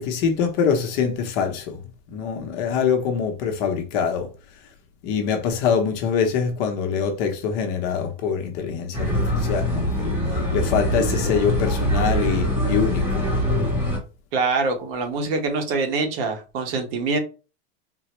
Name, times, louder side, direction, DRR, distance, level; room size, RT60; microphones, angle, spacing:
voice 1, 0.0-1.8 2.1-4.3 5.0-10.2 10.5-13.2, left 6 dB, 40° left, 0.7 m, -24 dB
sound 1, 8.9-14.0, equal, 5° right, 0.9 m, -23 dB
voice 2, 14.3-17.2, right 3 dB, 60° right, 1.0 m, -24 dB
3.7 x 2.0 x 2.9 m
supercardioid pair, 165°, 33 cm